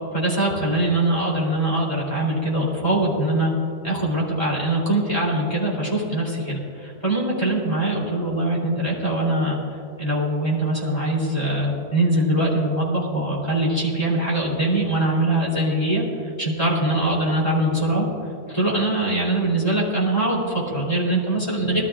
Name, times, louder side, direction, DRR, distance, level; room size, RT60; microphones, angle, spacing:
voice 1, 0.1-3.5 3.8-9.6 10.0-18.1 18.5-21.8, right 1 dB, 15° left, -5 dB, 3.4 m, -22 dB
20.5 x 13.0 x 2.5 m, 2.5 s
omnidirectional pair, 1.7 m